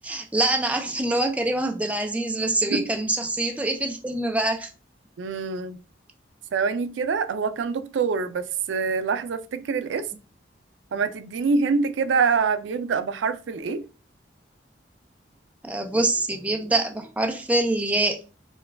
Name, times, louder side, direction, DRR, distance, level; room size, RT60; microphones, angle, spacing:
voice 1, 0.0-4.7 15.6-18.3, right 2 dB, 10° right, 0.4 m, -25 dB
voice 2, 5.2-5.8 6.5-10.1 10.9-13.8, right 5 dB, 85° right, 0.4 m, -25 dB
4.6 x 2.2 x 3.3 m
head